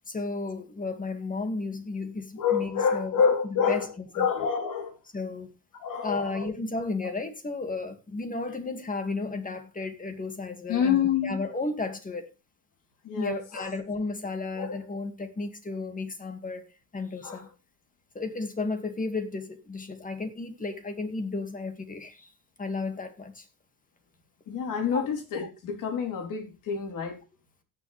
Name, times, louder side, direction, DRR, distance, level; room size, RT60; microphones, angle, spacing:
voice 1, 0.1-3.2 3.7-4.3 5.1-5.5 6.0-12.3 13.1-16.6 16.9-17.5 18.1-22.3 22.6-23.5 24.9-25.1, left 3 dB, 25° left, 2.2 m, -33 dB
voice 2, 2.4-3.9 4.1-5.0 5.8-6.5 7.0-7.1 10.7-11.4 13.0-13.7 14.6-14.8 17.2-17.4 24.5-27.2, left 7 dB, 75° left, 3.8 m, -27 dB
17.5 x 7.1 x 3.4 m
cardioid pair, 105°, 32 cm